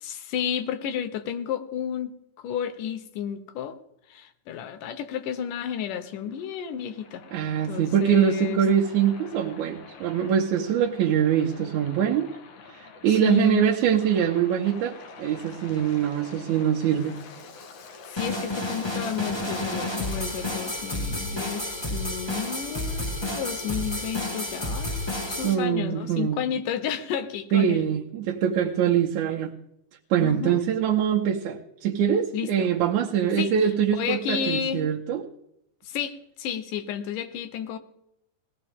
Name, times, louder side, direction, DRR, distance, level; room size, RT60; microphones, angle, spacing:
voice 1, 0.0-2.1 2.4-3.8 4.1-7.2 7.6-8.6 13.1-13.6 18.1-25.0 25.3-27.9 30.2-30.6 32.3-32.7 33.4-33.5 34.0-34.8 35.8-37.8, left 8 dB, 85° left, 9 dB, 2.6 m, -31 dB
Waves surf, 5.5-21.1, left 4 dB, 60° left, 2.3 m, -47 dB
voice 2, 7.3-12.3 12.7-17.2 25.4-26.4 27.5-29.5 30.1-35.2, right 9 dB, 75° right, -2 dB, 2.2 m, -23 dB
sound 1, 18.2-25.5, left 1 dB, 15° left, 1.1 m, -30 dB
19.5 x 16.0 x 3.6 m, 0.78 s
omnidirectional pair, 3.6 m